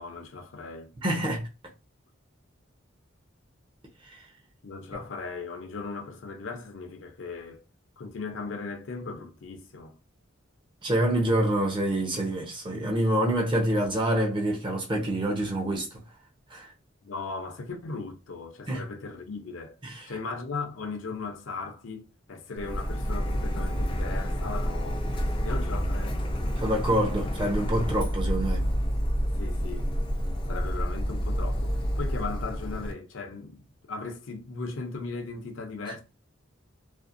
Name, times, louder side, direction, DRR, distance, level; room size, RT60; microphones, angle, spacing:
voice 1, 0.0-0.9 4.6-7.6 8.0-9.9 17.0-19.7 20.1-25.0 25.4-26.2 29.3-29.9 30.5-36.0, left 4 dB, 70° left, 0.6 m, -37 dB
voice 2, 1.0-1.5 4.1-4.2 10.8-16.0 16.5-16.7 18.7-18.8 19.8-20.1 26.6-28.7, right 1 dB, 25° right, 0.6 m, -26 dB
Printer, 22.6-32.9, equal, 25° left, 0.4 m, -29 dB
2.5 x 2.0 x 2.5 m
head